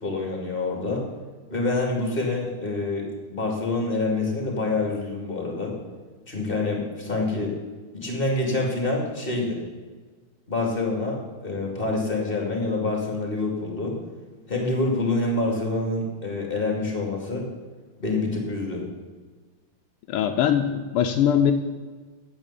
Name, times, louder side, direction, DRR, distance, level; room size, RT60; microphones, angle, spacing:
voice 1, 0.0-1.1 1.5-5.7 6.3-7.5 7.9-9.6 10.5-14.0 14.5-17.4 18.0-18.8, left 2 dB, 25° left, 0 dB, 2.5 m, -26 dB
voice 2, 20.1-21.5, left 9 dB, 90° left, 4 dB, 1.6 m, -21 dB
8.8 x 8.0 x 8.4 m, 1.4 s
omnidirectional pair, 2.4 m